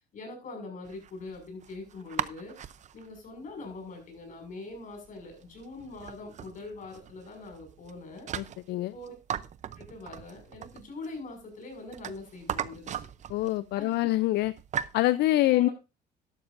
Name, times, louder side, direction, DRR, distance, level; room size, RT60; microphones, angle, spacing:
voice 1, 0.1-2.6 2.9-8.3 8.9-9.2 9.8-13.1 13.8-13.9 15.5-15.7, left 3 dB, 50° left, 5 dB, 6.0 m, -43 dB
sound 1, 0.8-15.0, right 9 dB, 45° right, 0.7 m, -40 dB
voice 2, 8.4-8.9 13.3-14.5 14.9-15.7, left 16 dB, 75° left, 16 dB, 0.5 m, -25 dB
12.5 x 11.5 x 2.6 m, 0.27 s
cardioid pair, 110°, 17 cm